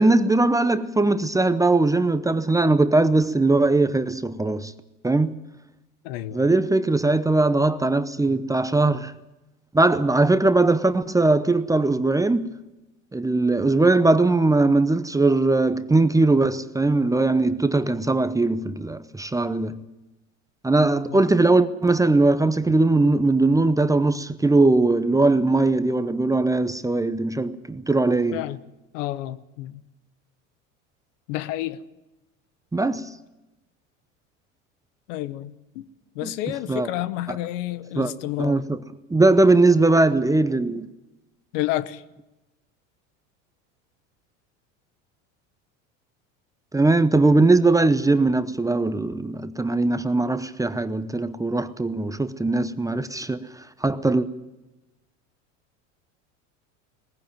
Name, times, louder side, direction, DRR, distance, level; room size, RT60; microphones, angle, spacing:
voice 1, 0.0-4.7 5.0-5.4 6.3-9.1 9.7-12.5 13.1-19.8 20.6-28.4 32.7-33.1 36.2-36.3 36.7-36.9 37.3-37.4 37.9-38.1 38.4-38.8 39.1-40.9 46.7-53.5 53.8-54.3, right 2 dB, 10° right, 0.7 m, -20 dB
voice 2, 6.0-6.5 21.1-21.2 28.3-28.6 28.9-29.8 31.3-31.8 35.1-35.8 36.1-38.6 41.5-42.0, left 15 dB, 70° left, 1.0 m, -30 dB
19.5 x 15.5 x 9.0 m
hypercardioid pair, 90°, 39 cm